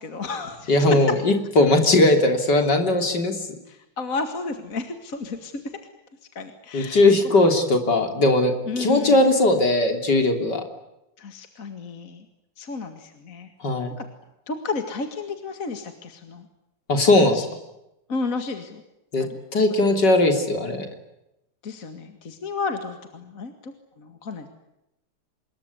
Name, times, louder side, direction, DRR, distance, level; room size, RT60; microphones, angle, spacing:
voice 1, 0.0-0.9 3.7-5.5 6.4-7.0 8.7-9.2 11.2-12.3 12.6-13.5 14.5-16.5 17.2-17.5 18.1-18.8 19.2-19.4 21.6-24.5, left 4 dB, 45° left, 7 dB, 2.4 m, -32 dB
voice 2, 0.7-3.4 6.7-10.6 13.6-13.9 16.9-17.4 19.1-19.2 19.5-20.9, left 2 dB, 60° left, 5 dB, 4.0 m, -19 dB
26.0 x 22.0 x 9.7 m, 0.87 s
omnidirectional pair, 2.1 m